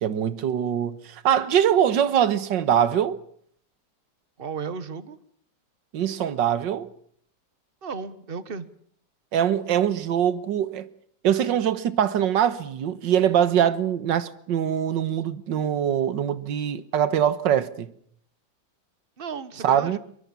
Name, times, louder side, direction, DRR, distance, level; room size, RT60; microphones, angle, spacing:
voice 1, 0.0-3.2 5.9-6.9 9.3-10.9 11.2-17.9 19.6-20.0, right 9 dB, 70° right, 1.9 m, -23 dB
voice 2, 4.4-5.2 7.8-8.7 19.2-20.0, right 5 dB, 35° right, 1.4 m, -34 dB
23.0 x 23.0 x 7.1 m
omnidirectional pair, 2.1 m